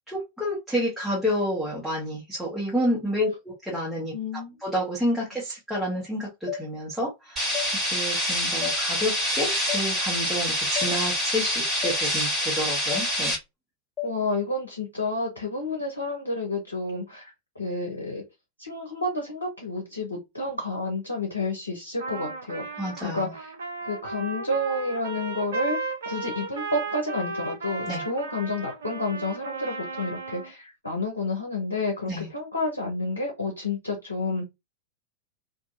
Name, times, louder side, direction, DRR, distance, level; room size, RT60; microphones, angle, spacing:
voice 1, 0.1-13.3 22.8-23.3 27.9-28.0 32.1-32.3, equal, ahead, 1.4 m, -29 dB
voice 2, 4.1-4.6 14.0-18.2 18.6-23.5 23.8-25.8 26.0-34.5, left 2 dB, 80° left, 0.8 m, -30 dB
sound 1, 6.5-6.6 7.5-7.7 8.6-8.8 9.7-9.8 10.8-10.9 11.8-12.0 12.9-13.1 14.0-14.1, left 10 dB, 25° left, 0.7 m, -31 dB
sound 2, 7.4-13.4, equal, 20° right, 1.6 m, -26 dB
Trumpet, 22.0-30.5, right 3 dB, 65° right, 0.5 m, -34 dB
2.6 x 2.6 x 2.6 m
figure-of-eight pair, 90°, 0 cm